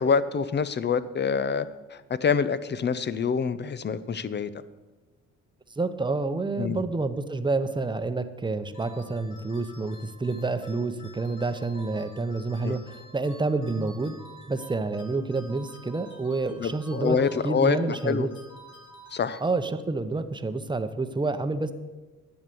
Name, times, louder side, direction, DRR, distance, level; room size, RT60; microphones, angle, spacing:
voice 1, 0.0-4.6 6.6-6.8 12.6-12.8 16.6-18.3 19.1-19.4, left 6 dB, 35° left, 15 dB, 0.7 m, -26 dB
voice 2, 5.8-14.1 14.5-17.2 17.4-18.3 19.4-21.7, right 3 dB, 15° right, 9 dB, 0.9 m, -28 dB
sound 1, 8.7-20.0, right 1 dB, 85° left, 2.9 m, -50 dB
11.0 x 8.1 x 7.0 m, 1.2 s
cardioid pair, 90°, 30 cm